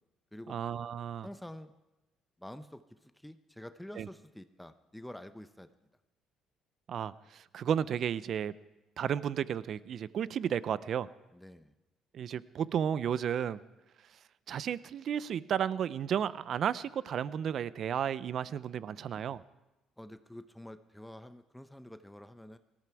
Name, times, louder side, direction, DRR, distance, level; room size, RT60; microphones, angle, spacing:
voice 1, 0.5-1.3 4.0-4.1 6.9-8.5 9.0-11.1 12.1-13.6 14.5-19.4, right 8 dB, 60° right, 18 dB, 0.5 m, -33 dB
voice 2, 1.2-1.7 2.4-5.7 11.3-11.7 20.0-22.6, left 1 dB, 5° left, 11 dB, 0.7 m, -48 dB
18.5 x 14.0 x 4.7 m, 1.0 s
supercardioid pair, 80°, 0 cm